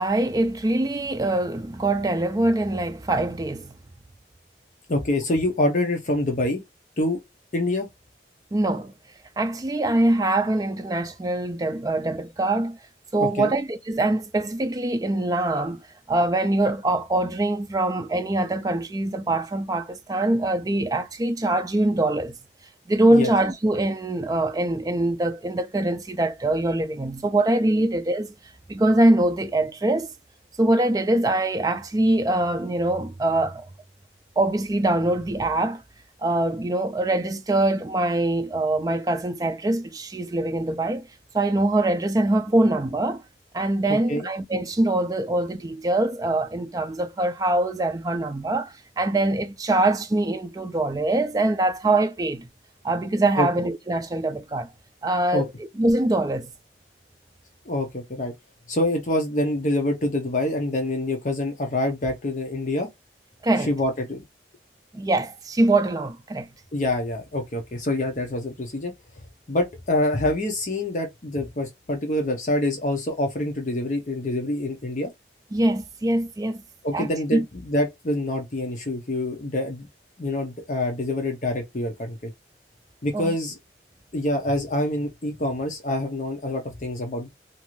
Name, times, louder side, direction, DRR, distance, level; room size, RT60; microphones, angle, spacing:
voice 1, 0.0-3.7 8.5-8.9 9.4-12.8 13.1-22.4 22.9-28.3 28.7-30.1 30.6-33.6 34.4-35.8 36.2-41.1 41.3-43.2 43.5-52.5 52.8-54.7 55.0-55.5 55.8-56.5 63.4-63.7 64.9-66.5 75.5-76.6 76.9-77.4 83.1-83.4, right 2 dB, 20° right, 0.3 m, -23 dB
voice 2, 4.9-6.6 7.0-7.2 7.5-7.9 13.2-13.5 23.1-23.3 43.9-44.3 53.4-53.5 55.3-55.5 57.7-58.3 58.7-62.9 63.7-64.2 66.7-68.9 69.5-75.1 76.8-79.9 80.2-82.3 83.0-83.6 84.1-87.3, left 1 dB, 45° left, 0.7 m, -26 dB
2.6 x 2.5 x 3.0 m
head